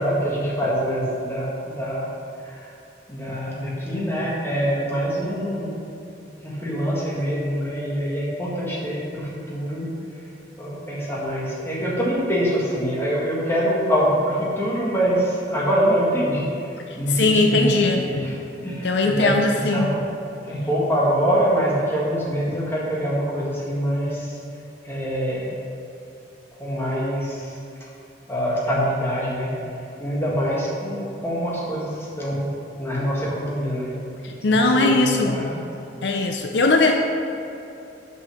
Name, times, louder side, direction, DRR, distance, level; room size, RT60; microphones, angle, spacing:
voice 1, 0.0-2.1 2.4-2.7 3.1-5.8 6.4-9.9 10.6-18.4 18.6-20.0 20.4-24.4 24.8-25.6 26.6-27.6 28.3-29.5 30.0-32.5 32.7-34.0 34.5-35.6, equal, 15° left, -6 dB, 1.7 m, -24 dB
voice 2, 17.1-18.0 18.8-19.9 34.2-35.4 36.0-36.9, left 2 dB, 65° left, 3 dB, 0.6 m, -19 dB
6.6 x 5.5 x 6.3 m, 2.9 s
head